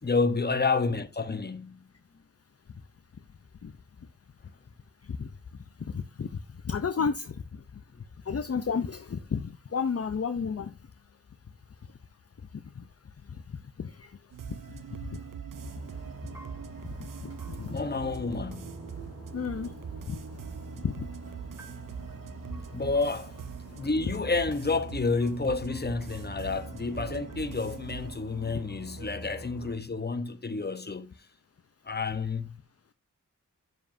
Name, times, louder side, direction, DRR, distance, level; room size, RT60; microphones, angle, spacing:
voice 1, 0.0-1.8 7.9-8.0 17.7-18.7 22.7-23.3 23.7-31.1 31.9-32.5, left 4 dB, 30° left, 1.0 m, -30 dB
voice 2, 5.9-6.3 6.6-7.4 8.3-10.7 12.8-12.9 13.8-14.1 15.1-15.2 17.6-17.8 19.3-19.7 20.1-20.2 20.8-21.1, left 6 dB, 50° left, 0.6 m, -31 dB
sound 1, 14.3-28.1, right 8 dB, 75° right, 0.5 m, -43 dB
sound 2, 15.5-29.7, right 1 dB, 50° right, 3.4 m, -45 dB
sound 3, 15.9-29.1, right 1 dB, 10° right, 1.7 m, -56 dB
9.4 x 7.2 x 2.7 m
cardioid pair, 45°, 32 cm